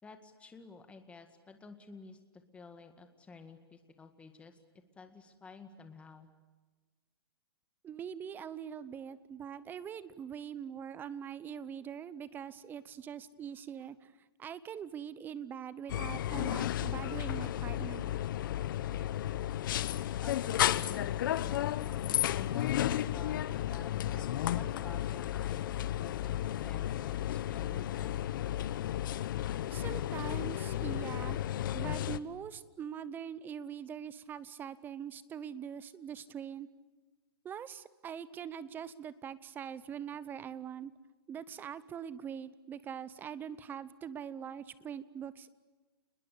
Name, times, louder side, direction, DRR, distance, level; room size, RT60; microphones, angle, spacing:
voice 1, 0.0-2.2 2.5-4.6 5.0-6.3 20.2-22.8 23.1-25.7 26.0-28.2, left 4 dB, 10° left, 7 dB, 2.0 m, -52 dB
voice 2, 7.8-14.1 14.4-18.1 29.7-31.4 31.7-36.7 37.4-40.9 41.3-45.5, right 8 dB, 15° right, 17 dB, 0.8 m, -43 dB
sound 1, 15.9-32.2, left 12 dB, 55° left, 1.0 m, -33 dB
29.0 x 21.0 x 8.5 m, 1.3 s
hypercardioid pair, 150°, 13 cm